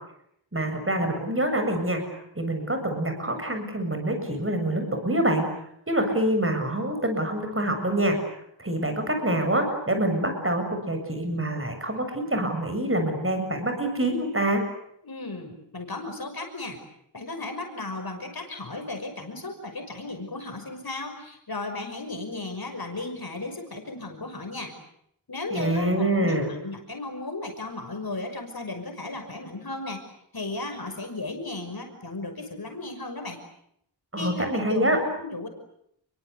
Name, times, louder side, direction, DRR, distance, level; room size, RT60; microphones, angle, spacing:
voice 1, 0.5-2.0 2.4-5.5 5.9-8.2 8.6-14.6 25.5-26.5 34.1-35.0, right 1 dB, 30° right, 5 dB, 7.5 m, -26 dB
voice 2, 15.0-16.8 17.1-24.7 25.3-30.0 30.3-33.4 34.2-35.5, left 2 dB, 50° left, 5 dB, 6.0 m, -35 dB
29.5 x 23.5 x 8.3 m, 0.74 s
wide cardioid pair, 75°, 46 cm